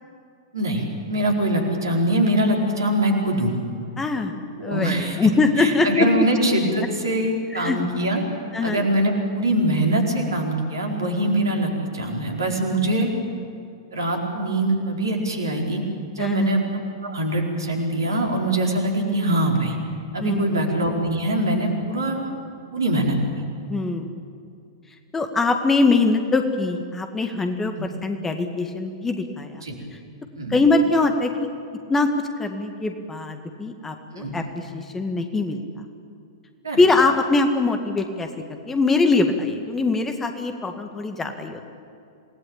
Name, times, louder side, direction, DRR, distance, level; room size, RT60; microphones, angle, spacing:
voice 1, 0.5-3.6 4.6-5.2 5.6-8.2 8.6-13.1 13.9-15.8 16.1-19.8 20.1-22.3 22.7-23.2 27.8-27.9 29.6-29.7 30.4-30.6 34.1-34.3 36.6-36.8, right 1 dB, 70° right, 1 dB, 4.6 m, -23 dB
voice 2, 4.0-4.3 4.6-6.2 7.5-7.8 8.5-8.9 16.2-16.5 20.2-20.4 23.7-24.1 25.1-29.6 30.5-31.5 31.9-32.1 32.4-35.6 36.8-41.6, left 3 dB, 15° left, 6 dB, 1.9 m, -22 dB
27.5 x 19.0 x 8.8 m, 2.5 s
figure-of-eight pair, 100°, 2 cm